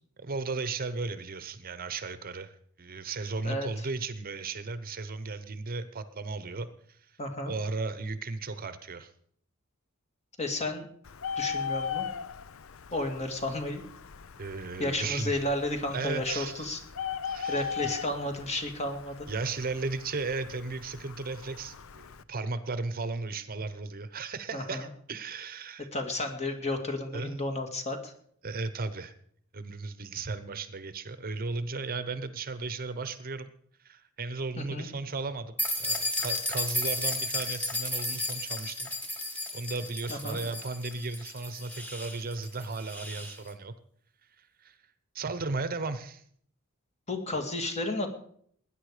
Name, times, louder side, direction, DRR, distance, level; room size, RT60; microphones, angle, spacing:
voice 1, 0.2-2.5 2.8-7.0 7.5-9.1 14.4-15.4 15.9-16.6 17.2-17.9 19.3-25.9 27.1-27.4 28.4-29.1 29.5-33.5 33.8-38.9 39.5-43.7 44.4-44.8 45.1-46.2, right 3 dB, 45° right, 12 dB, 0.9 m, -35 dB
voice 2, 3.4-3.9 7.2-7.5 10.4-10.9 11.4-12.1 12.9-13.8 14.8-16.8 17.5-19.3 24.5-24.9 25.9-28.1 34.6-34.9 40.1-40.4 47.1-48.1, left 1 dB, 30° left, 5 dB, 2.3 m, -32 dB
Bird, 11.1-22.2, left 7 dB, 70° left, 0.6 m, -39 dB
sound 1, 35.6-43.4, left 1 dB, 10° left, 1.8 m, -33 dB
19.5 x 10.0 x 5.0 m, 0.62 s
head